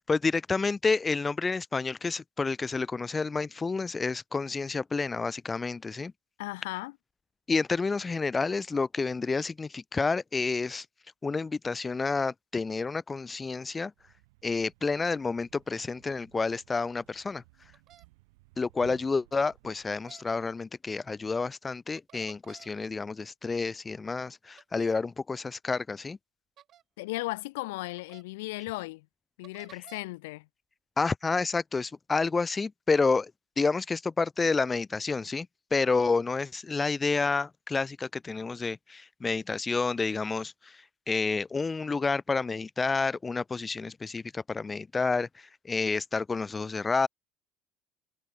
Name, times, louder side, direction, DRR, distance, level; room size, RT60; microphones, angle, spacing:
voice 1, 0.1-6.1 7.5-10.8 11.2-13.9 14.4-17.4 18.6-26.2 31.0-33.3 33.6-40.8 41.1-47.1, left 4 dB, 20° left, 0.7 m, -29 dB
voice 2, 6.4-7.0 27.0-29.1 29.4-30.5, left 21 dB, 85° left, 0.8 m, -36 dB
Thump thud, 13.9-20.1, right 25 dB, 80° right, 6.5 m, -58 dB
sound 1, 17.7-18.0 19.9-20.2 22.0-22.7 24.6-25.0 26.6-26.8 28.0-28.2 29.4-30.0, right 11 dB, 50° right, 7.3 m, -53 dB
hypercardioid pair, 80°, 0 cm